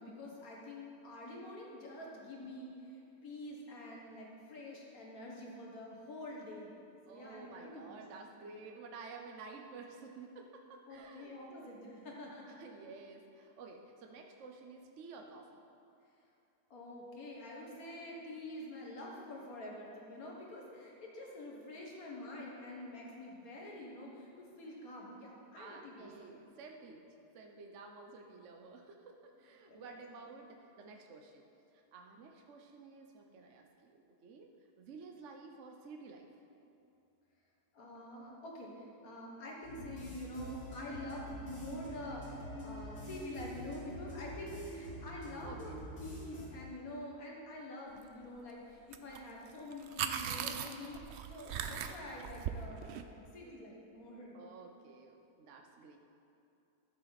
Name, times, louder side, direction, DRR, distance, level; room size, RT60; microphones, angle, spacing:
voice 1, 0.0-2.9 3.2-6.8 7.1-8.0 10.9-12.6 16.7-26.4 29.7-30.0 37.7-45.7 46.0-54.3, left 1 dB, 60° left, -2 dB, 2.0 m, -47 dB
voice 2, 7.1-11.7 12.5-15.6 25.5-27.0 27.3-31.4 31.7-34.5 34.8-36.3 45.4-45.8 53.4-53.6 54.3-56.0, right 4 dB, 55° right, 3 dB, 1.0 m, -52 dB
sound 1, 39.6-46.5, equal, 80° left, 3.1 m, -45 dB
sound 2, 48.9-49.2 49.5-53.0, right 8 dB, 85° right, 0.6 m, -39 dB
13.0 x 7.4 x 4.1 m, 2.7 s
omnidirectional pair, 1.7 m